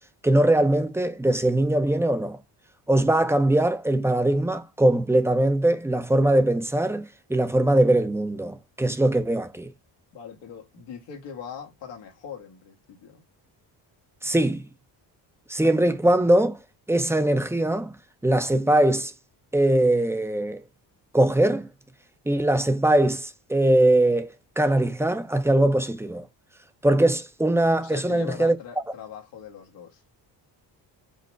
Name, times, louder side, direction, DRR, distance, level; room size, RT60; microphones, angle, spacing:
voice 1, 0.2-2.4 2.9-9.7 14.2-14.6 15.5-16.6 16.9-17.9 18.2-19.1 19.5-20.6 21.1-21.7 22.3-26.3 26.8-28.6, right 1 dB, 5° right, 0.6 m, -21 dB
voice 2, 10.1-13.2 27.8-30.0, left 8 dB, 80° left, 1.5 m, -41 dB
5.2 x 2.0 x 4.6 m
cardioid pair, 80°, 43 cm